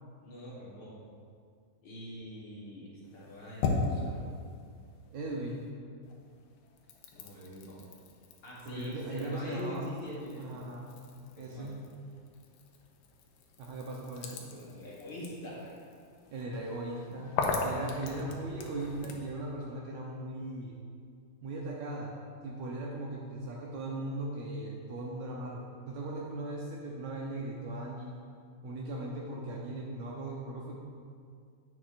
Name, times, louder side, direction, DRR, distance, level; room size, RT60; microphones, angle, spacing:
voice 1, 0.2-1.0 1.8-4.3 7.1-7.9 8.4-10.6 11.4-11.7 14.5-15.8 17.8-18.0, equal, 55° left, -6 dB, 1.2 m, -44 dB
sound 1, 3.0-5.7 6.0-19.3, left 3 dB, 90° left, 2.4 m, -39 dB
voice 2, 5.1-5.8 8.6-9.9 10.4-11.0 11.4-11.9 13.6-14.4 16.3-20.8 21.4-22.2 22.4-28.2 28.6-30.7, right 2 dB, 75° right, -2 dB, 1.7 m, -38 dB
10.5 x 8.5 x 2.5 m, 2.2 s
omnidirectional pair, 3.9 m